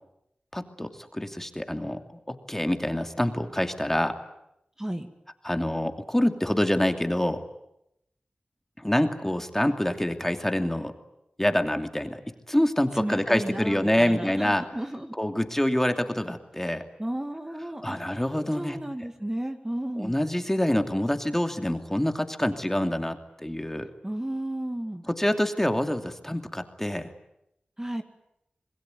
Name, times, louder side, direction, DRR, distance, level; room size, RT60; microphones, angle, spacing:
voice 1, 0.5-2.0 2.3-4.2 5.4-7.4 8.8-10.9 11.4-12.2 12.5-14.6 15.2-16.8 17.8-18.8 20.0-23.9 25.2-27.1, left 1 dB, 10° left, 6 dB, 2.7 m, -26 dB
voice 2, 4.8-5.1 12.9-15.1 16.6-16.7 17.0-20.2 24.0-25.0 27.8-28.0, right 1 dB, 15° right, 6 dB, 2.2 m, -33 dB
27.0 x 21.0 x 9.4 m, 0.83 s
cardioid pair, 45°, 3 cm